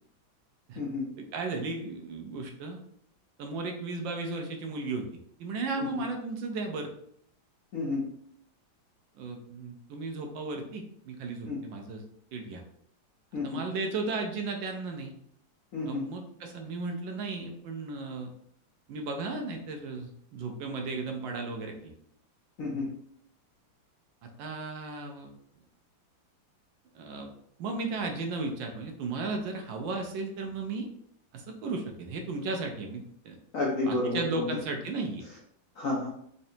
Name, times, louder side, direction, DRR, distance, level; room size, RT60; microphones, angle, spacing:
voice 1, 1.2-2.8 3.4-5.1 5.4-6.9 9.2-12.0 12.3-12.6 13.4-15.1 15.9-18.3 18.9-21.9 24.4-25.3 26.9-27.3 27.6-30.9 31.3-33.4 33.9-35.2, right 3 dB, 75° right, 3 dB, 1.3 m, -35 dB
voice 2, 7.7-8.0 11.5-11.6 13.3-13.6 15.7-16.1 22.6-22.9 33.5-34.5 35.8-36.1, left 2 dB, 65° left, -3 dB, 0.8 m, -30 dB
3.9 x 3.3 x 2.7 m, 0.68 s
omnidirectional pair, 2.1 m